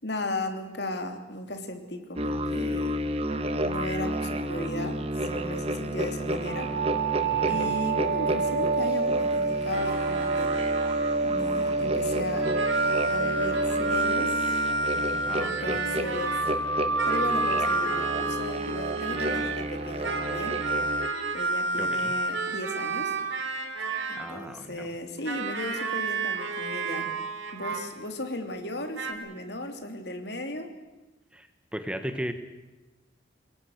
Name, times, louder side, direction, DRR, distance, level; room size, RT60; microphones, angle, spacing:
voice 1, 0.0-3.0 3.6-6.7 7.4-10.5 11.2-12.5 12.8-14.3 15.4-16.4 17.1-20.6 21.3-23.2 24.1-27.1 27.5-30.7, left 1 dB, 60° left, 6 dB, 3.2 m, -36 dB
sound 1, 2.1-21.1, right 1 dB, 30° right, 1.5 m, -32 dB
sound 2, 6.5-15.3 16.1-20.9, right 3 dB, 65° right, 4.2 m, -29 dB
voice 2, 7.3-7.7 15.3-15.8 21.8-22.1 24.2-25.0 31.3-32.3, equal, 5° right, 8 dB, 1.3 m, -37 dB
sound 3, 9.7-11.2 12.3-16.6 17.0-19.7 20.0-24.4 25.2-28.1 28.9-29.1, right 3 dB, 90° right, 3.0 m, -31 dB
27.0 x 22.0 x 6.7 m, 1.1 s
head